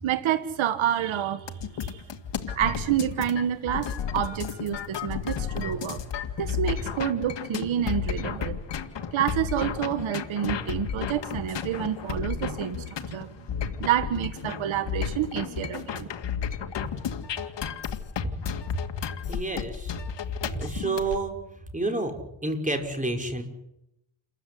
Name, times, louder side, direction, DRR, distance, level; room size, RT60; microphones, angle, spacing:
voice 1, 0.0-2.0 2.5-6.1 6.4-8.6 9.1-13.3 13.6-16.1, right 10 dB, 85° right, 11 dB, 1.6 m, -28 dB
sound 1, 1.5-21.2, left 8 dB, 65° left, 2.2 m, -33 dB
voice 2, 19.3-19.9 20.5-21.3 21.7-22.1 22.4-23.4, right 2 dB, 15° right, 4 dB, 5.4 m, -29 dB
29.0 x 15.0 x 9.9 m, 0.84 s
cardioid pair, 105°, 46 cm